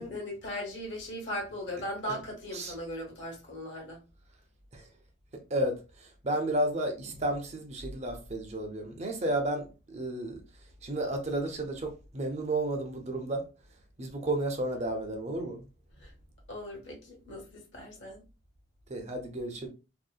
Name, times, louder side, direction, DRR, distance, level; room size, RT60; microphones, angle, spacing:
voice 1, 0.0-4.0 16.0-16.1 16.5-18.2, left 1 dB, 60° left, 1.0 m, -38 dB
voice 2, 5.3-10.4 10.8-13.4 14.0-15.7 18.9-19.7, right 1 dB, 35° right, 0.5 m, -32 dB
2.7 x 2.1 x 2.3 m
head